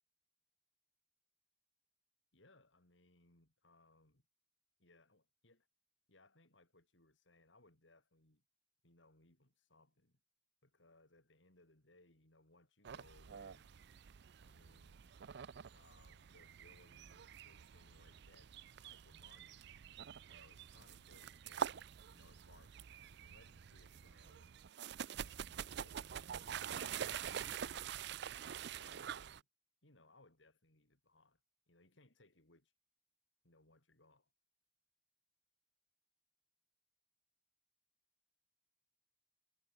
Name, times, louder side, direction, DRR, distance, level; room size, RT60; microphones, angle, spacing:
voice 1, 2.3-4.2 4.8-5.7 6.1-8.4 8.8-10.2 10.6-13.7 14.4-15.2 15.7-19.7 20.3-21.8 22.1-24.6 25.1-28.1 28.8-29.5 29.8-31.4 31.7-32.7 33.4-34.3, left 2 dB, 85° left, 5.5 m, -68 dB
sound 1, 12.8-29.4, right 8 dB, 65° right, 0.5 m, -47 dB
head